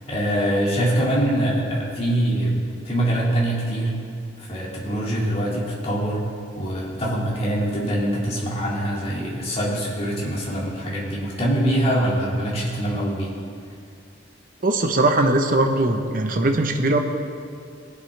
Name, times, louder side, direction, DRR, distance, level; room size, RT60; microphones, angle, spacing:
voice 1, 0.1-4.0 4.4-6.3 6.5-13.3, right 1 dB, 30° left, -5 dB, 2.2 m, -24 dB
voice 2, 14.6-17.0, right 2 dB, 45° right, 4 dB, 0.9 m, -20 dB
19.5 x 8.1 x 3.3 m, 2.4 s
head